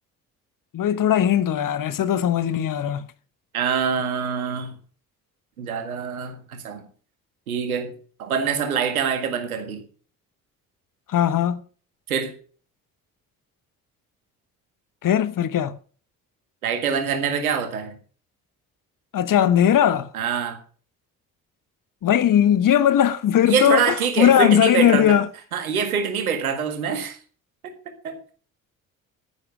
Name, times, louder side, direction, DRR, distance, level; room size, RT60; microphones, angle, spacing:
voice 1, 0.7-3.1 11.1-11.6 15.0-15.8 19.1-20.1 22.0-25.3, left 10 dB, 50° left, 1.2 m, -19 dB
voice 2, 3.5-4.7 5.6-6.8 7.5-7.9 8.2-9.8 12.1-12.3 16.6-18.0 20.1-20.6 23.5-25.2 25.5-27.2 28.0-28.2, right 6 dB, 85° right, 1.9 m, -25 dB
10.5 x 10.0 x 6.1 m
figure-of-eight pair, 45°, 42 cm